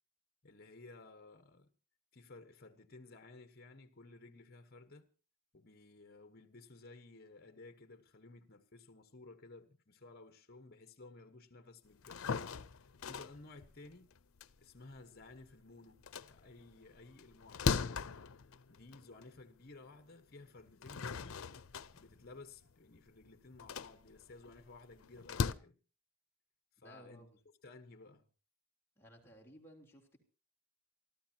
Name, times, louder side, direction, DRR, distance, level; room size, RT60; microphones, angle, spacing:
voice 1, 0.4-1.7 2.1-5.1 5.5-12.4 12.8-14.1 14.6-18.1 18.7-21.5 21.9-25.8 26.8-27.3 27.6-28.2, left 3 dB, 50° left, 1.2 m, -56 dB
sound 1, 11.9-15.5 15.9-19.4 19.9-20.0 20.6-25.5, left 5 dB, 90° left, 0.6 m, -40 dB
voice 2, 26.8-27.4 29.0-30.2, equal, 10° left, 3.5 m, -58 dB
28.0 x 13.0 x 2.9 m
head